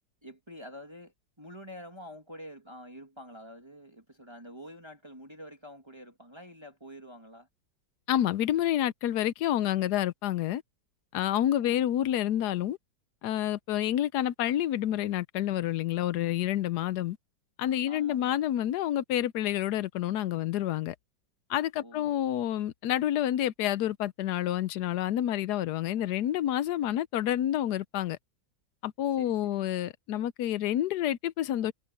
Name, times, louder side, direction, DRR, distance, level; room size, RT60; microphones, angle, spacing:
voice 1, 0.2-7.5 11.6-11.8 17.9-18.4 21.8-22.1 29.2-29.7, equal, 15° right, 2.3 m, -47 dB
voice 2, 8.1-10.6 11.1-12.8 13.2-17.2 17.6-20.9 21.5-28.2 28.8-31.7, left 12 dB, 70° left, 1.1 m, -28 dB
omnidirectional pair, 2.0 m